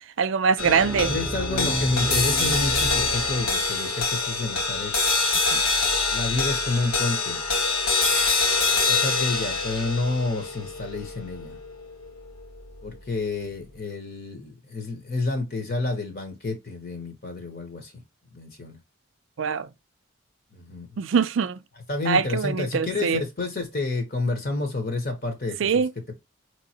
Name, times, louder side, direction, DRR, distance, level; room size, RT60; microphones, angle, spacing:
voice 1, 0.2-1.1 5.5-5.6 19.4-19.7 21.0-21.6 22.1-23.2 25.6-25.9, right 6 dB, 60° right, 0.4 m, -23 dB
sound 1, 0.6-13.1, left 3 dB, 85° left, 1.5 m, -25 dB
sound 2, 0.6-3.8, right 1 dB, 15° right, 0.7 m, -32 dB
voice 2, 1.0-4.9 6.1-7.4 8.9-11.6 12.8-17.9 18.3-18.8 20.5-20.9 21.9-25.8, left 3 dB, 45° left, 1.0 m, -29 dB
5.2 x 3.1 x 2.8 m
head